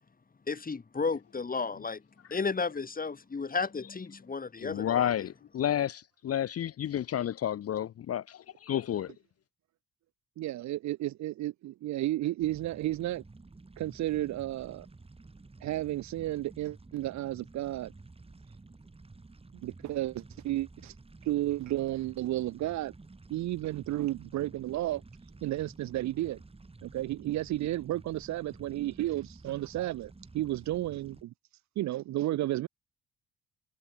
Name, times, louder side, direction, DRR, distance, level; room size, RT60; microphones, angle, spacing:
voice 1, 0.5-2.0 2.3-5.3, left 4 dB, 30° left, 2.8 m, -33 dB
voice 2, 4.6-9.1, left 10 dB, 50° left, 0.8 m, -31 dB
voice 3, 10.4-13.2 13.8-14.9 15.6-17.9 19.5-20.9 21.2-22.9 23.3-25.0 25.4-26.4 26.8-31.3 31.8-32.7, right 15 dB, 65° right, 0.6 m, -32 dB
sound 1, 12.4-31.2, right 3 dB, 20° right, 3.2 m, -52 dB
cardioid pair, 90°, 30 cm